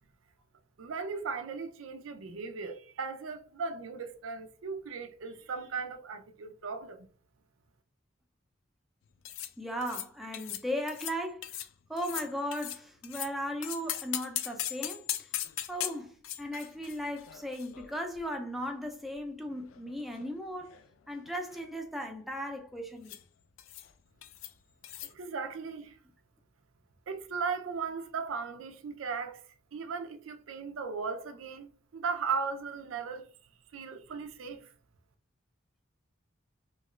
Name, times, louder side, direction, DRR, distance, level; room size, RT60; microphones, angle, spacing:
voice 1, 0.8-7.1 25.0-26.0 27.1-29.4 29.7-33.3 33.7-34.7, right 5 dB, 75° right, 0.5 m, -37 dB
sound 1, 9.2-9.5 9.8-10.1 10.3-10.6 10.9-11.2 11.4-11.7 12.0-13.3 13.6-18.3 18.6-18.7 19.4-20.3 20.6-20.9 21.1-21.6 23.0-23.2 23.6-23.9 24.2-24.5 24.8-25.1, left 12 dB, 75° left, 0.3 m, -39 dB
voice 2, 9.6-11.5 11.9-15.4 15.7-20.8 21.1-23.2, equal, ahead, 0.5 m, -37 dB
2.9 x 2.4 x 3.0 m
head